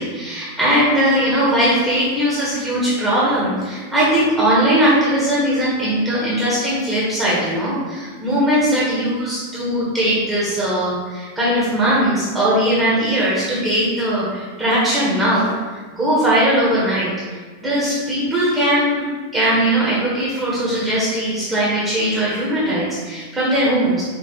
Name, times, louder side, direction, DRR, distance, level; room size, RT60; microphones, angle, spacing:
voice 1, 0.0-15.5 16.0-17.1 17.6-19.0 19.3-24.0, right 1 dB, 15° right, -8 dB, 1.2 m, -19 dB
5.2 x 2.8 x 3.0 m, 1.5 s
figure-of-eight pair, 90°, 0 cm